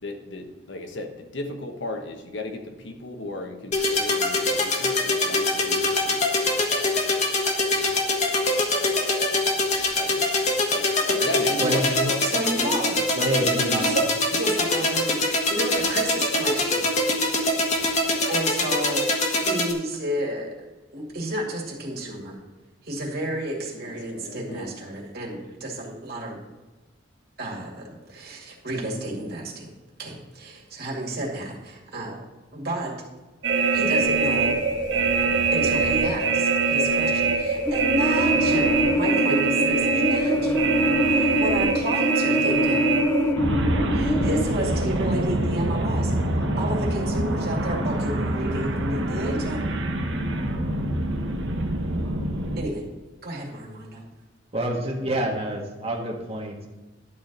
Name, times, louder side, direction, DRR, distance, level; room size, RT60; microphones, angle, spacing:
voice 1, 0.0-6.4 9.9-10.4 10.7-10.8 11.2-12.4 13.4-14.1 23.7-24.7, left 1 dB, 75° left, 4 dB, 1.2 m, -34 dB
sound 1, 3.7-19.7, left 2 dB, 40° left, 1.4 m, -24 dB
voice 2, 12.2-12.9 13.9-14.0 14.3-16.9 17.9-20.5 20.9-22.4 22.8-26.4 27.4-29.7 30.0-32.2 32.5-32.9 33.7-34.6 35.5-40.6 41.1-42.8 43.9-49.6 52.6-52.8 53.2-54.0, right 1 dB, 55° right, -1 dB, 2.3 m, -31 dB
voice 3, 13.2-13.9 54.5-56.7, right 1 dB, 30° right, -1 dB, 1.6 m, -27 dB
sound 2, 33.4-52.6, right 3 dB, 75° right, 1.0 m, -24 dB
sound 3, 37.6-44.4, left 1 dB, 10° left, 0.5 m, -25 dB
11.5 x 4.5 x 6.7 m, 1.2 s
head